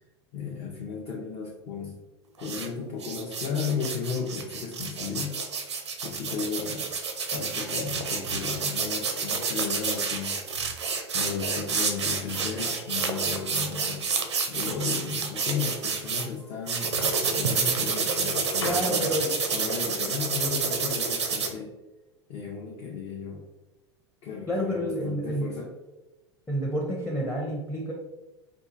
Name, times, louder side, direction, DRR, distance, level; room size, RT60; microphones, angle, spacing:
voice 1, 0.3-2.0 2.4-5.4 6.0-6.9 7.3-10.4 11.1-14.1 14.5-17.0 17.3-19.1 19.5-21.7 22.3-23.4 24.2-25.7, left 5 dB, 45° left, -2 dB, 0.7 m, -34 dB
sound 1, 2.4-2.7 3.0-16.3 16.7-21.5, right 5 dB, 80° right, 0.5 m, -29 dB
sound 2, 12.2-13.5 14.0-14.7 15.7-17.2 17.8-19.1, left 2 dB, 85° left, 0.5 m, -43 dB
voice 2, 18.6-19.3 24.5-25.5 26.5-27.9, equal, 10° left, -2 dB, 0.7 m, -29 dB
4.5 x 2.4 x 2.6 m, 1.1 s
figure-of-eight pair, 85°, 14 cm